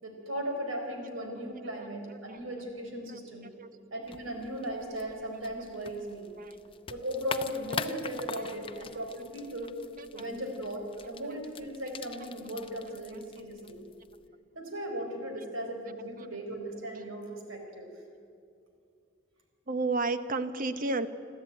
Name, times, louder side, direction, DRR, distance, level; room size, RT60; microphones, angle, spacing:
voice 1, 0.0-3.5 3.9-6.3 6.9-9.7 10.1-13.8 14.5-17.9, equal, 75° right, 3 dB, 4.1 m, -37 dB
voice 2, 2.1-2.4 3.1-3.2 3.6-3.7 6.4-6.6 10.0-10.3 16.9-17.0 19.7-21.1, right 3 dB, 45° right, 11 dB, 1.0 m, -32 dB
sound 1, 4.0-14.3, left 5 dB, 25° left, 0.7 m, -43 dB
26.0 x 13.5 x 9.2 m, 2.5 s
head